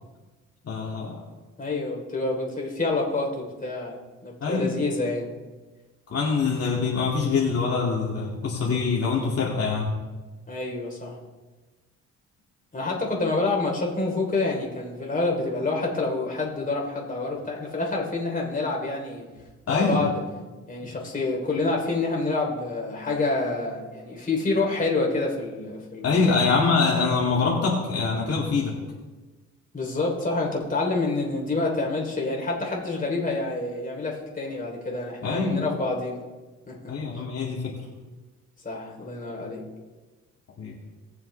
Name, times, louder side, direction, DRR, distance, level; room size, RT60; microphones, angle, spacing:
voice 1, 0.6-1.2 4.4-4.7 6.1-9.9 19.7-20.0 26.0-28.7 35.2-35.6 36.9-37.6 40.6-40.7, left 4 dB, 50° left, -4 dB, 2.4 m, -24 dB
voice 2, 1.6-4.0 4.2-5.2 10.5-11.2 12.7-19.3 19.7-20.1 20.7-26.1 29.7-36.2 36.7-36.9 38.6-39.6, left 3 dB, 25° left, -2 dB, 3.4 m, -27 dB
19.5 x 7.1 x 3.3 m, 1.2 s
cardioid pair, 90°, 30 cm